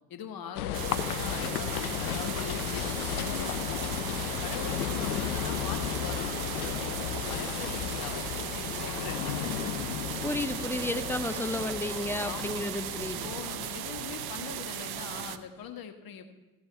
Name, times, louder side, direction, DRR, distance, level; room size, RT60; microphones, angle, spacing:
voice 1, 0.1-1.7 2.0-4.0 4.4-9.8 12.2-12.7 13.1-16.3, left 7 dB, 55° left, 7 dB, 1.4 m, -42 dB
sound 1, 0.5-15.2, left 11 dB, 85° left, 0.5 m, -34 dB
sound 2, 0.7-15.4, right 12 dB, 60° right, 0.7 m, -37 dB
voice 2, 10.2-13.3, left 1 dB, 5° left, 10 dB, 0.8 m, -32 dB
14.5 x 7.0 x 5.5 m, 1.2 s
figure-of-eight pair, 45°, 42 cm